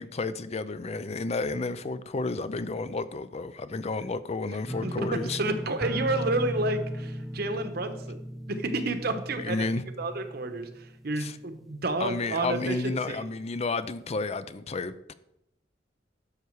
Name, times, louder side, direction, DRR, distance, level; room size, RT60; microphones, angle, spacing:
voice 1, 0.0-5.4 9.4-9.8 11.2-11.4 12.0-15.1, left 3 dB, 35° left, 14 dB, 0.5 m, -31 dB
sound 1, 4.7-11.5 11.8-12.4 12.7-12.8, equal, ahead, 0.7 m, -37 dB
voice 2, 4.8-8.2 8.5-9.7 10.0-13.2, right 2 dB, 60° right, 8 dB, 1.1 m, -30 dB
11.5 x 6.8 x 4.7 m, 0.80 s
head